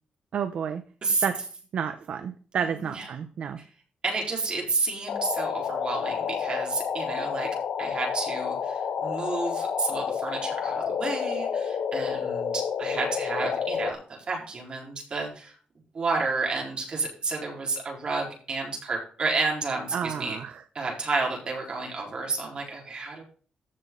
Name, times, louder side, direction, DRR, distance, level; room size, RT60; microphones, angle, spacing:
voice 1, 0.3-0.8 1.2-1.4 1.7-3.6 19.9-20.6, right 7 dB, 60° right, 9 dB, 0.8 m, -30 dB
voice 2, 2.6-3.1 3.6-3.7 4.0-7.5 7.8-15.6 15.9-20.4 20.7-23.2, right 3 dB, 40° right, -1 dB, 4.4 m, -31 dB
sound 1, 5.1-13.9, left 7 dB, 80° left, 1.2 m, -30 dB
14.0 x 6.3 x 3.9 m, 0.41 s
wide cardioid pair, 165°, 3 cm